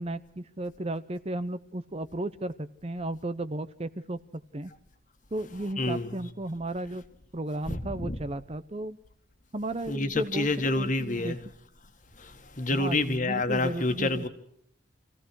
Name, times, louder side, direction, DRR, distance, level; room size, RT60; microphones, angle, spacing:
voice 1, 0.0-4.2 4.5-4.7 5.3-7.0 7.3-9.0 9.5-10.5 10.8-11.3 12.7-14.3, right 1 dB, 30° right, 0.8 m, -34 dB
voice 2, 5.8-6.3 7.7-8.2 9.9-11.4 12.1-14.3, left 2 dB, 40° left, 1.7 m, -28 dB
26.0 x 16.5 x 6.3 m
head